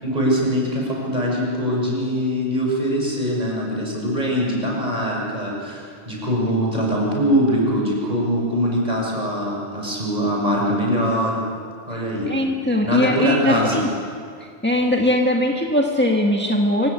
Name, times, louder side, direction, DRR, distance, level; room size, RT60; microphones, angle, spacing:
voice 1, 0.0-11.4 11.9-12.3 12.8-13.8, equal, 40° right, -2 dB, 6.4 m, -22 dB
voice 2, 12.3-13.9 14.6-16.9, left 1 dB, 10° left, 0 dB, 1.7 m, -20 dB
25.5 x 17.5 x 8.4 m, 2.2 s
omnidirectional pair, 1.1 m